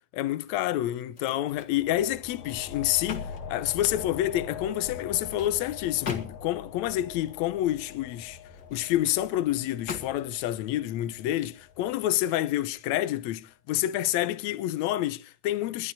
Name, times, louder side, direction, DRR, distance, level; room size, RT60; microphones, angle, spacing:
voice 1, 0.1-8.4 8.7-15.9, left 14 dB, 80° left, 1.6 m, -28 dB
sound 1, 1.1-1.8 2.2-4.2 4.9-6.7 8.5-9.2 9.9-10.5 11.0-11.2, left 6 dB, 35° left, 2.0 m, -41 dB
sound 2, 1.5-12.7, left 6 dB, 55° left, 2.4 m, -43 dB
22.0 x 11.5 x 4.2 m
omnidirectional pair, 4.2 m